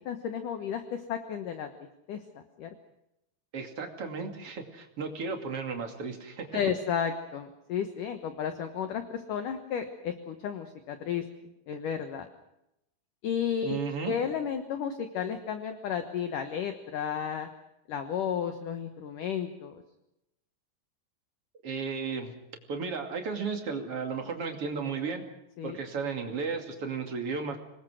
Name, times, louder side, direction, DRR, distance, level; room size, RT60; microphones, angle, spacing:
voice 1, 0.1-1.7 2.1-2.2 2.6-2.7 6.5-11.2 11.7-12.3 13.2-13.8 14.0-17.5 17.9-19.8 25.6-25.8, left 8 dB, 65° left, 7 dB, 2.3 m, -33 dB
voice 2, 3.5-6.7 13.6-14.1 21.6-22.3 22.7-25.2 25.6-27.6, right 5 dB, 40° right, 4 dB, 2.8 m, -34 dB
26.0 x 21.0 x 6.3 m, 0.84 s
omnidirectional pair, 5.1 m